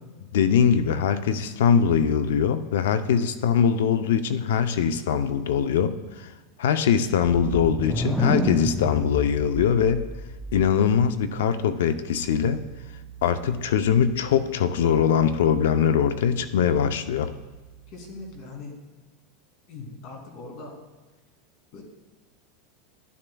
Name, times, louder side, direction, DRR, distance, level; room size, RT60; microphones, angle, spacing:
voice 1, 0.3-6.3 6.6-10.0 10.5-12.6 13.2-17.3, left 7 dB, 85° left, 11 dB, 0.6 m, -22 dB
sound 1, 7.2-10.9, right 1 dB, ahead, 0.5 m, -30 dB
Piano, 12.1-18.4, right 10 dB, 85° right, 1.4 m, -47 dB
voice 2, 17.9-18.8 19.7-20.7 21.7-21.8, left 3 dB, 50° left, 1 dB, 2.7 m, -40 dB
12.0 x 11.0 x 2.3 m, 1.2 s
supercardioid pair, 140°, 0 cm